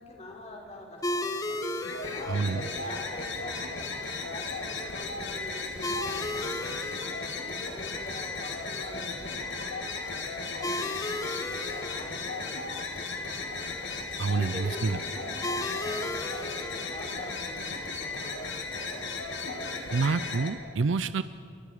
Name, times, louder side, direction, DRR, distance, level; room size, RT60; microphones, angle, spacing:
voice 1, 0.0-1.6 2.1-7.0 7.4-9.8 10.1-12.8 13.1-13.5 14.1-19.1, left 1 dB, 35° left, -1 dB, 4.7 m, -45 dB
sound 1, 1.0-20.2, left 2 dB, 20° left, 1.2 m, -39 dB
sound 2, 1.8-20.5, left 3 dB, 80° left, 2.9 m, -36 dB
voice 2, 2.3-2.6 14.2-15.0 19.9-21.2, right 4 dB, 75° right, 13 dB, 0.5 m, -27 dB
29.5 x 23.5 x 5.0 m, 2.5 s
head